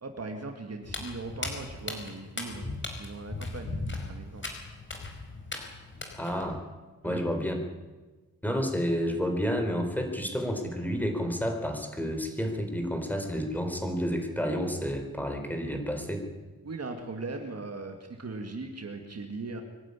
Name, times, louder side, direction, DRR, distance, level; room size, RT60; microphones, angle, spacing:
voice 1, 0.0-3.8 4.1-4.4 7.0-7.2 16.6-19.6, right 3 dB, 45° right, 5 dB, 2.4 m, -39 dB
Walk footsteps, 0.8-6.4, left 2 dB, 35° left, 4.9 m, -38 dB
voice 2, 6.1-6.6 7.0-7.6 8.4-16.2, equal, 5° left, 4 dB, 4.4 m, -30 dB
24.5 x 12.0 x 10.0 m, 1.2 s
wide cardioid pair, 105°, 35 cm